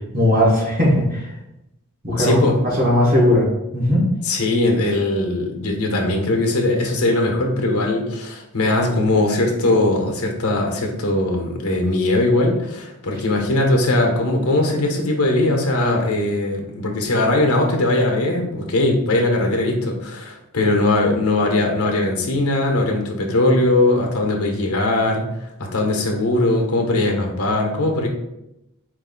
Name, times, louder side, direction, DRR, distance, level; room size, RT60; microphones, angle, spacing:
voice 1, 0.1-1.3 2.0-3.5 3.7-4.0, left 1 dB, 40° right, -4 dB, 1.5 m, -17 dB
voice 2, 2.2-2.6 4.2-25.2 25.6-28.1, left 2 dB, 70° left, 1 dB, 1.0 m, -20 dB
4.7 x 2.7 x 3.9 m, 0.88 s
head